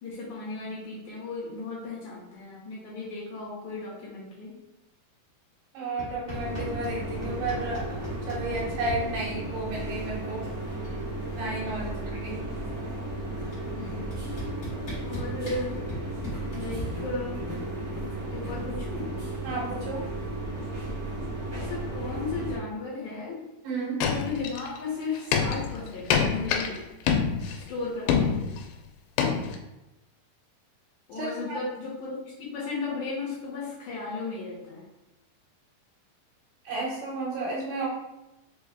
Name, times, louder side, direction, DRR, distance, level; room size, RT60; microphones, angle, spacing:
voice 1, 0.0-4.6 11.6-12.1 13.7-14.2 15.0-15.8 16.5-17.4 18.3-19.1 21.5-23.4 24.0-26.8 27.6-28.6 31.1-34.8, left 3 dB, 70° left, -6 dB, 2.0 m, -35 dB
voice 2, 5.7-8.0 8.3-10.4 11.3-12.4 19.4-20.0 23.6-24.0 31.2-31.6 36.7-37.9, right 2 dB, 80° right, -4 dB, 2.7 m, -32 dB
sound 1, 6.0-7.0 7.2-9.0 10.3-10.4 10.6-11.0 11.3-12.6 13.5-13.6 14.1-16.8, left 1 dB, 50° left, 1.1 m, -39 dB
sound 2, 6.3-22.6, right 1 dB, 50° right, 1.1 m, -34 dB
sound 3, 24.0-24.8 25.1-26.8 27.1-27.7 28.1-28.7 29.2-29.6, left 6 dB, 90° left, 2.3 m, -26 dB
5.6 x 2.2 x 3.4 m, 0.96 s
omnidirectional pair, 4.0 m